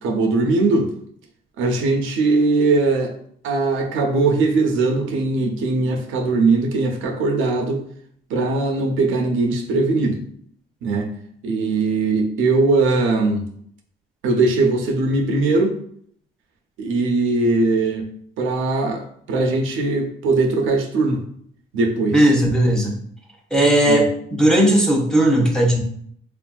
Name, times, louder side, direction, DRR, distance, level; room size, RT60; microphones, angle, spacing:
voice 1, 0.0-0.9 1.6-3.1 3.4-7.8 8.3-10.2 10.8-11.1 11.4-13.5 14.2-15.8 16.8-18.0 18.4-21.2 21.7-22.3 23.9-24.0, right 3 dB, 90° right, 3 dB, 0.6 m, -20 dB
voice 2, 22.1-22.9 23.5-25.8, right 1 dB, 5° left, -1 dB, 0.8 m, -16 dB
3.4 x 2.5 x 2.3 m, 0.64 s
cardioid pair, 85°, 20 cm